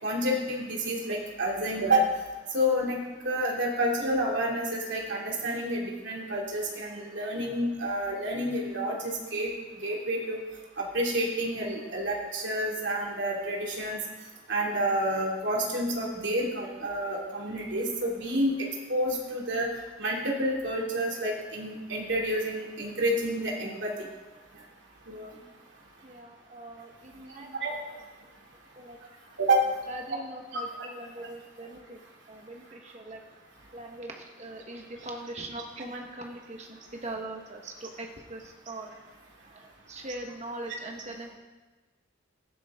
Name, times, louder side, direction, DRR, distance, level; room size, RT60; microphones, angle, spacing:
voice 1, 0.0-2.0 2.5-9.5 9.8-10.4 10.8-14.0 14.5-19.7 20.0-23.9 25.1-25.3 27.6-27.7 29.4-29.7 30.5-30.6, right 1 dB, 65° right, -2 dB, 2.9 m, -29 dB
voice 2, 26.0-27.7 28.7-29.0 29.9-32.0 32.3-33.2 33.7-38.9 39.5-41.3, right 2 dB, 35° right, 2 dB, 1.4 m, -41 dB
15.5 x 11.0 x 3.7 m, 1.2 s
head